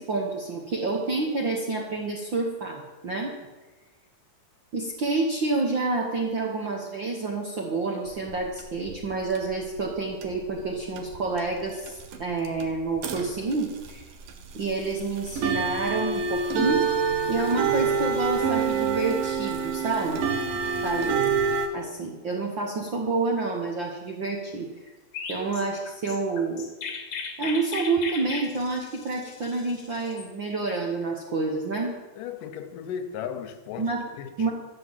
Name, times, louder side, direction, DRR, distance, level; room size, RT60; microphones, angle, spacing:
voice 1, 0.0-3.3 4.7-14.0 14.5-16.9 17.2-20.2 20.8-21.2 21.7-24.7 25.3-26.7 27.4-31.9 33.8-34.0 34.4-34.5, right 3 dB, 55° right, 1.3 m, -28 dB
sound 1, 8.1-9.9 10.2-10.7 11.0-21.7, right 5 dB, 85° right, 3.0 m, -27 dB
voice 2, 20.5-21.0 32.2-33.9 34.2-34.5, left 8 dB, 75° left, 2.4 m, -36 dB
Chirp tweet, 25.1-30.3, left 5 dB, 50° left, 2.0 m, -37 dB
13.0 x 7.7 x 7.4 m
omnidirectional pair, 4.0 m